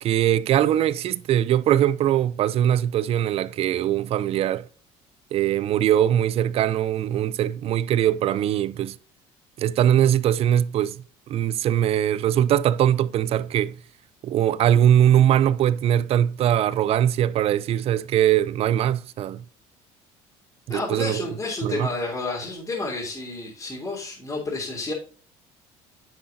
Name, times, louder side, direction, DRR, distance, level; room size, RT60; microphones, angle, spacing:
voice 1, 0.0-4.7 5.3-9.0 9.6-13.8 14.2-19.4 20.7-21.3 21.6-21.9, right 11 dB, 55° right, 0.5 m, -21 dB
voice 2, 20.7-24.9, left 3 dB, 20° left, 3.3 m, -30 dB
9.8 x 6.5 x 2.7 m
cardioid pair, 120°, 12 cm